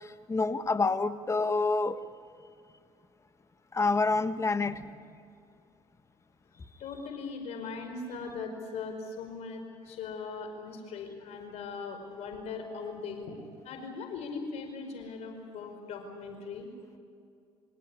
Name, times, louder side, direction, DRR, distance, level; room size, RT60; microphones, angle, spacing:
voice 1, 0.0-2.0 3.7-4.8, left 3 dB, 25° left, 10 dB, 1.6 m, -28 dB
voice 2, 6.8-13.4 13.6-16.7, left 4 dB, 65° left, 5 dB, 4.9 m, -39 dB
26.5 x 17.0 x 9.9 m, 2.4 s
supercardioid pair, 80°, 12 cm